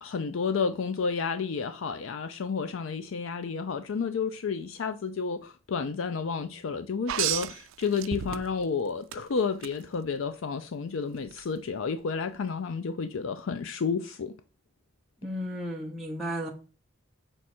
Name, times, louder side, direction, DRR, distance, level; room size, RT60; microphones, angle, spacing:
voice 1, 0.0-14.3, left 5 dB, 80° left, 0.4 m, -31 dB
sound 1, 7.1-8.7 9.1-9.7 11.3-11.4, right 12 dB, 85° right, 0.4 m, -31 dB
voice 2, 15.2-16.5, equal, ahead, 0.8 m, -34 dB
6.2 x 4.5 x 4.2 m
head